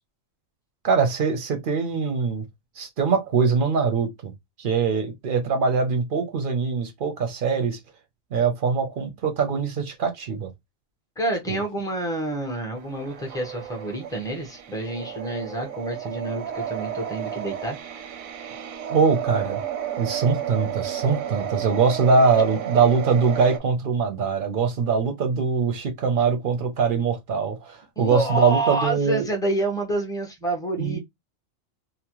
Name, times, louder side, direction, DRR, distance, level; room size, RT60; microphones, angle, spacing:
voice 1, 0.8-2.4 2.8-4.3 4.6-7.8 8.3-10.5 11.5-11.6 18.9-19.6 20.0-29.3 30.8-31.0, right 5 dB, 55° right, 0.6 m, -22 dB
voice 2, 11.2-17.8 28.0-31.0, right 1 dB, 5° left, 0.4 m, -28 dB
sound 1, 12.8-23.6, right 10 dB, 85° right, 1.0 m, -32 dB
2.8 x 2.0 x 2.9 m
omnidirectional pair, 1.4 m